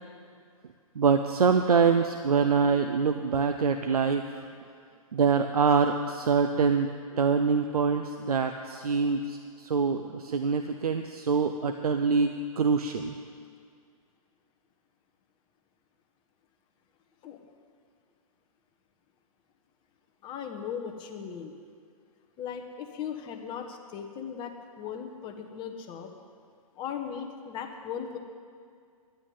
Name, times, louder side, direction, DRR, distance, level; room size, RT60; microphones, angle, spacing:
voice 1, 1.0-4.2 5.1-6.9 7.1-12.3 12.6-13.1, right 5 dB, 85° right, 7 dB, 0.7 m, -25 dB
voice 2, 20.2-21.5 22.4-26.1 26.7-28.2, left 7 dB, 25° left, 4 dB, 1.3 m, -38 dB
11.0 x 8.8 x 9.3 m, 2.2 s
hypercardioid pair, 135°, 19 cm